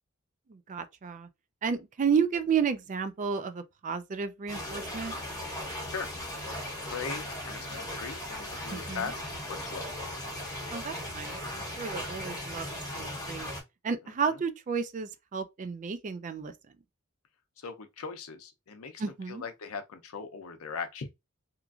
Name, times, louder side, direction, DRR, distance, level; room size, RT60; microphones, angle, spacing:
voice 1, 0.5-1.3 1.6-5.2 8.7-9.1 10.7-12.7 12.9-13.5 13.8-16.5 19.0-19.4, right 6 dB, 35° right, 0.3 m, -32 dB
sound 1, 4.5-13.6, left 1 dB, 15° left, 1.1 m, -37 dB
voice 2, 6.8-9.2 9.5-9.8 14.3-14.4 17.6-21.2, left 5 dB, 75° left, 0.6 m, -39 dB
3.0 x 2.5 x 2.3 m
head